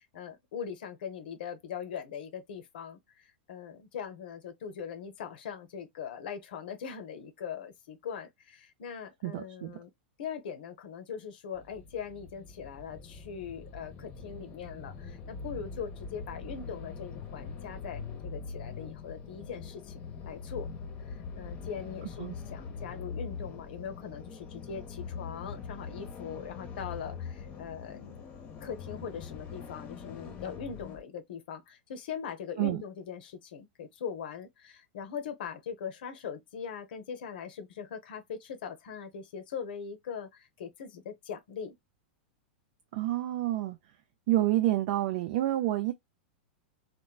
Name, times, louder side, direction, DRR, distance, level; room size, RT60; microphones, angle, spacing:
voice 1, 0.1-9.9 10.2-20.7 21.1-28.2 28.6-41.8, left 7 dB, 70° left, 0.6 m, -41 dB
voice 2, 9.2-9.8 22.2-22.4 32.6-32.8 42.9-43.8 44.3-45.9, right 15 dB, 60° right, 0.4 m, -28 dB
sound 1, 11.5-31.0, left 5 dB, 35° left, 0.8 m, -43 dB
3.0 x 2.1 x 2.2 m
hypercardioid pair, 105°, 5 cm